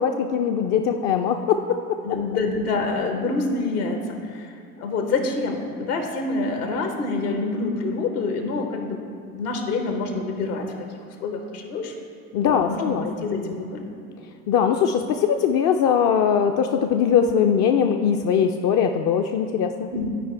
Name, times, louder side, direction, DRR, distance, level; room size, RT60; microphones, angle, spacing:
voice 1, 0.0-1.8 2.1-2.2 12.3-13.1 13.4-13.6 14.5-19.9, left 7 dB, 40° left, 4 dB, 0.5 m, -21 dB
voice 2, 2.0-4.5 4.8-9.0 9.3-10.6 11.2-11.9 12.4-13.9 19.9-20.2, left 3 dB, 75° left, 4 dB, 1.2 m, -26 dB
11.5 x 4.7 x 4.5 m, 2.4 s
figure-of-eight pair, 65°, 46 cm